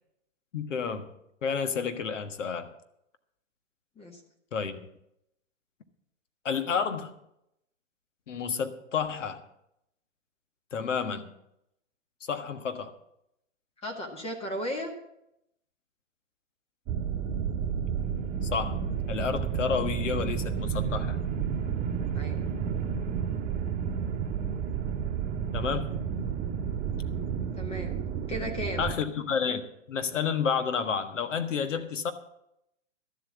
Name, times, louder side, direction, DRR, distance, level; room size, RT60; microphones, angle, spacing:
voice 1, 0.5-1.1 1.4-2.7 4.5-4.8 6.4-7.1 8.3-9.4 10.7-11.3 12.3-12.9 18.4-18.8 19.1-21.2 25.5-26.0 28.8-29.6 29.9-32.1, left 6 dB, 75° left, 9 dB, 1.6 m, -30 dB
voice 2, 13.8-14.9 22.1-22.4 27.5-28.0 28.3-28.9, equal, 15° left, 3 dB, 1.7 m, -35 dB
sound 1, 16.9-28.9, right 7 dB, 20° right, 2.0 m, -31 dB
12.5 x 7.9 x 7.3 m, 0.80 s
hypercardioid pair, 130°, 37 cm